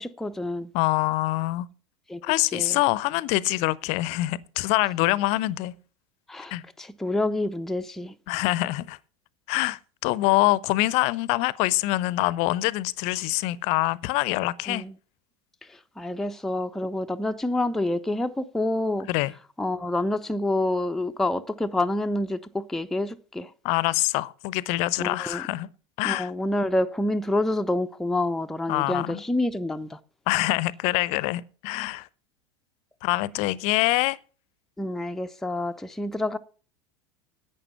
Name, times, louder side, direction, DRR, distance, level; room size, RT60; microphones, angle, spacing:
voice 1, 0.0-0.7 2.1-2.2 2.5-2.8 6.3-8.1 14.7-14.9 15.7-19.1 19.6-23.5 25.0-25.4 26.0-30.0 34.8-36.4, left 1 dB, 5° left, 0.6 m, -28 dB
voice 2, 0.7-1.7 2.2-5.7 6.5-6.6 8.3-9.0 9.5-14.8 19.1-19.3 23.6-25.7 26.0-26.3 28.7-29.2 30.3-32.1 33.0-34.2, left 19 dB, 45° left, 0.6 m, -25 dB
11.0 x 8.7 x 5.6 m
figure-of-eight pair, 80°, 15 cm